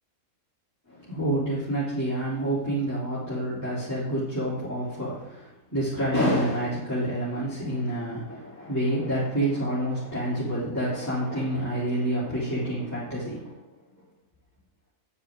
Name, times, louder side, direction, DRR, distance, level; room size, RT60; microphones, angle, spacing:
voice 1, 0.9-13.6, right 1 dB, 10° left, -10 dB, 3.4 m, -28 dB
10.5 x 9.7 x 3.8 m, 0.88 s
omnidirectional pair, 1.5 m